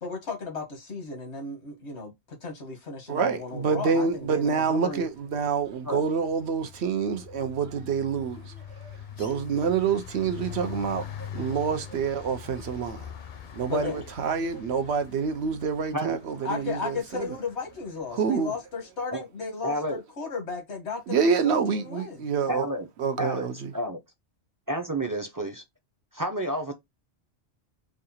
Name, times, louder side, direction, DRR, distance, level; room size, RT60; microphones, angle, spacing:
voice 1, 0.0-5.1 13.7-14.0 16.4-22.3, left 4 dB, 90° left, 1.6 m, -35 dB
voice 2, 3.1-13.1 13.5-17.3 18.2-18.5 21.1-22.7 23.0-23.7, right 6 dB, 80° right, 1.0 m, -27 dB
sound 1, 4.6-4.9 5.2-18.3, left 9 dB, 55° left, 0.7 m, -43 dB
voice 3, 19.6-20.0 22.5-22.9 23.2-23.5 23.7-24.0 24.7-25.6 26.1-26.7, right 1 dB, 25° right, 0.5 m, -30 dB
4.8 x 2.4 x 2.7 m
omnidirectional pair, 1.1 m